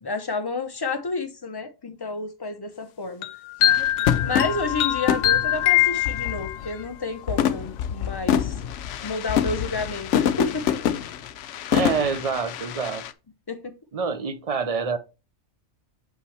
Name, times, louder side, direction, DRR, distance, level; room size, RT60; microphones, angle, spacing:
voice 1, 0.0-3.3 4.2-8.6 9.0-10.7 13.5-13.7, left 3 dB, 25° left, 0.5 m, -30 dB
sound 1, 3.2-6.7, left 13 dB, 90° left, 1.0 m, -23 dB
sound 2, 3.6-6.9 7.3-13.1, left 9 dB, 70° left, 0.9 m, -26 dB
voice 2, 11.7-13.0 13.9-15.0, right 5 dB, 45° right, 0.5 m, -26 dB
7.5 x 5.6 x 3.2 m
omnidirectional pair, 1.4 m